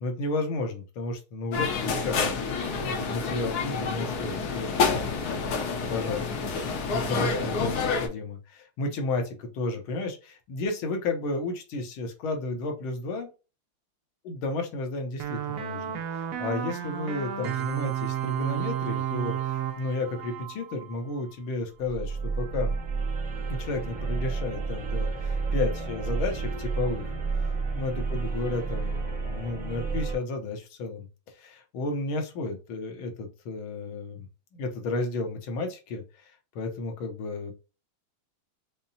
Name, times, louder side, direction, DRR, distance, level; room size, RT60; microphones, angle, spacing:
voice 1, 0.0-6.5 6.9-13.3 14.3-22.7 23.5-27.1 27.7-34.3 34.6-37.5, left 3 dB, 75° left, 4 dB, 1.6 m, -33 dB
sound 1, 1.5-8.1, left 4 dB, 60° left, 1.1 m, -28 dB
sound 2, 15.2-21.3, right 10 dB, 70° right, 1.0 m, -32 dB
sound 3, 21.8-30.2, right 4 dB, 5° right, 0.9 m, -30 dB
5.4 x 2.1 x 2.7 m, 0.31 s
omnidirectional pair, 2.3 m